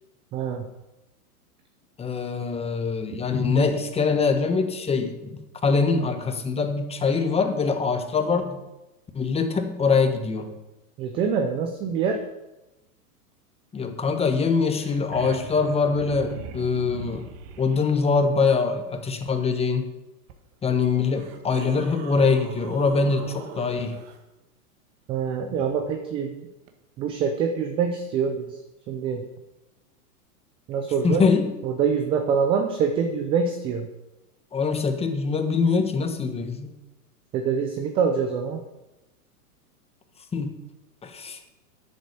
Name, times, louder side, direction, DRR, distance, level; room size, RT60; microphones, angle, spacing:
voice 1, 0.3-0.7 3.1-3.2 11.0-12.2 25.1-26.4 27.0-28.6 28.9-29.3 30.7-31.2 31.6-33.9 37.3-38.6, right 6 dB, 15° right, 6 dB, 0.3 m, -25 dB
voice 2, 2.0-8.6 9.1-10.5 13.7-17.3 17.6-19.9 20.6-24.0 31.0-31.5 34.5-36.8 40.3-40.5 41.0-41.4, left 4 dB, 15° left, 7 dB, 1.2 m, -23 dB
sound 1, 14.4-14.5 14.7-17.8 20.3-20.4 21.0-24.2 26.7-26.8, right 5 dB, 45° right, 1.8 m, -40 dB
11.5 x 8.0 x 6.5 m, 1.0 s
hypercardioid pair, 125°, 46 cm